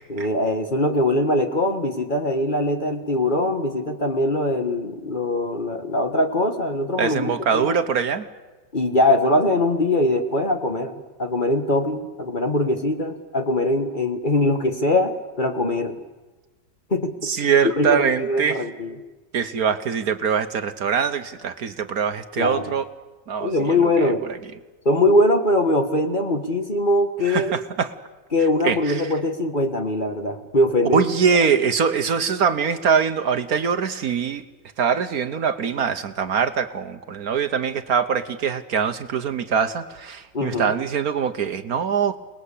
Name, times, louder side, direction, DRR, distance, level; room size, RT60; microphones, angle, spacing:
voice 1, 0.1-7.7 8.7-10.9 11.2-16.0 16.9-17.1 17.8-18.9 22.4-22.7 23.4-24.2 24.8-27.5 28.3-31.0 31.3-31.5 40.3-40.7, left 1 dB, 30° left, 6 dB, 1.5 m, -22 dB
voice 2, 7.0-8.2 17.2-18.6 19.3-22.9 23.3-24.4 27.2-27.9 28.6-29.1 30.9-34.4 34.8-42.2, right 6 dB, 60° right, 10 dB, 1.4 m, -23 dB
28.0 x 19.5 x 8.4 m, 1.2 s
omnidirectional pair, 1.9 m